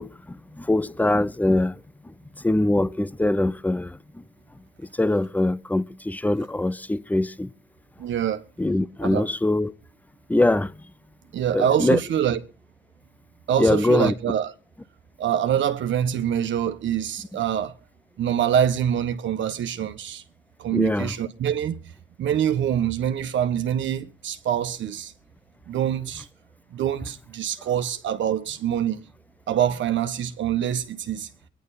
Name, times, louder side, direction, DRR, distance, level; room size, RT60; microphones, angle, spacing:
voice 1, 0.0-4.2 4.8-7.5 8.6-9.7 10.3-10.8 11.5-12.0 13.6-14.1 17.3-17.4 20.7-21.1, left 1 dB, 10° left, 0.7 m, -23 dB
voice 2, 8.0-8.4 9.0-9.3 11.3-12.4 13.5-14.5 15.2-17.7 18.2-20.2 20.6-21.8 22.2-25.1 25.7-26.3 26.7-29.0 29.5-31.3, right 9 dB, 70° right, 1.4 m, -25 dB
22.0 x 10.5 x 4.2 m
cardioid pair, 90°, 20 cm